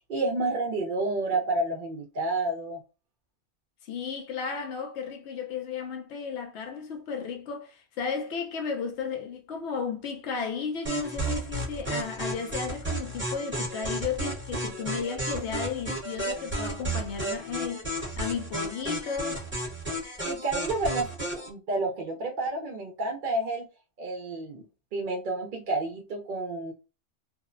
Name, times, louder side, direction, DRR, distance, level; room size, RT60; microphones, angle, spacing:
voice 1, 0.1-2.8 20.2-23.7 24.0-24.7 24.9-26.7, right 2 dB, 60° right, 0.6 m, -30 dB
voice 2, 3.8-19.5, left 6 dB, 85° left, 0.9 m, -34 dB
sound 1, 10.9-21.5, right 1 dB, 10° right, 0.8 m, -33 dB
2.7 x 2.0 x 2.4 m
omnidirectional pair, 1.1 m